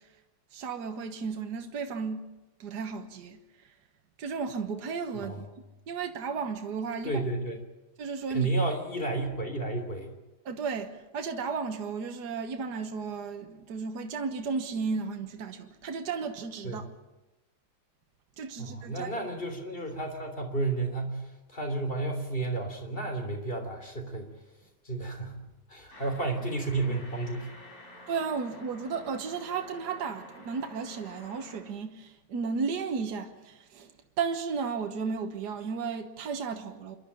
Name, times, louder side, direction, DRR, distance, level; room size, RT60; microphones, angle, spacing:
voice 1, 0.5-2.3 2.6-3.4 4.2-5.5 5.9-7.2 8.0-8.5 10.5-16.9 18.4-19.1 28.1-33.9 34.2-37.0, right 5 dB, 65° right, 1.9 m, -34 dB
voice 2, 5.1-5.4 7.0-7.6 8.3-10.1 16.6-16.8 18.6-24.3 24.8-25.4 25.7-27.5, right 2 dB, 30° left, 3.6 m, -32 dB
sound 1, 25.9-31.6, equal, 50° left, 5.8 m, -50 dB
27.5 x 12.0 x 10.0 m
omnidirectional pair, 2.0 m